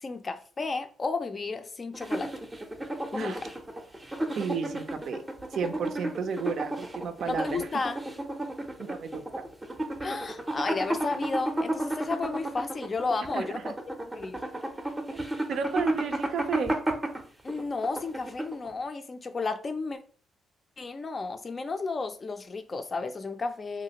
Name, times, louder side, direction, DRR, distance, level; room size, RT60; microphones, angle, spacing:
voice 1, 0.0-2.3 3.1-3.5 7.3-8.0 10.0-14.4 17.4-20.0 20.8-23.8, left 3 dB, 35° left, 0.4 m, -33 dB
sound 1, 1.9-18.8, right 1 dB, 15° right, 0.6 m, -33 dB
voice 2, 4.4-5.2 5.5-7.7 8.8-9.2 13.3-13.7 15.1-15.2 15.5-16.8, right 5 dB, 65° right, 0.5 m, -32 dB
3.1 x 2.4 x 2.8 m
cardioid pair, 90°, 0 cm